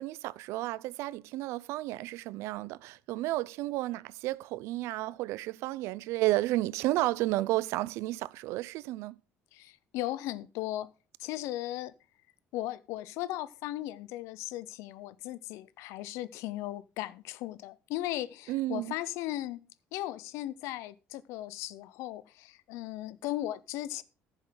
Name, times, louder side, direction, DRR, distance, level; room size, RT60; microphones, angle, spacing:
voice 1, 0.0-9.2 18.5-18.9, right 17 dB, 70° right, 0.4 m, -32 dB
voice 2, 9.5-10.9 11.2-11.9 12.5-19.6 19.9-24.0, left 15 dB, 80° left, 0.6 m, -37 dB
14.0 x 7.1 x 3.8 m
cardioid pair, 175°, 5 cm